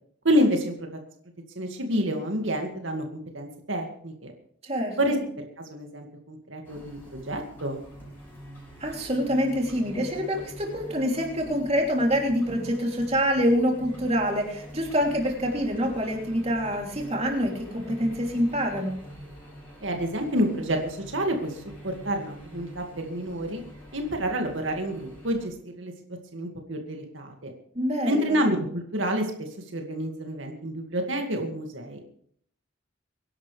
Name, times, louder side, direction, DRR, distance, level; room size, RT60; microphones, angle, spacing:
voice 1, 0.2-0.7 1.6-4.3 5.0-5.2 5.6-7.8 19.8-23.6 23.9-25.9 26.3-27.5 28.0-29.3 29.7-32.0, equal, 80° right, 3 dB, 2.2 m, -28 dB
voice 2, 4.6-5.2 8.8-19.0 27.7-28.4, equal, 30° right, 1 dB, 3.1 m, -26 dB
sound 1, 6.6-25.5, equal, 10° left, 6.9 m, -45 dB
24.5 x 11.0 x 3.4 m, 0.63 s
head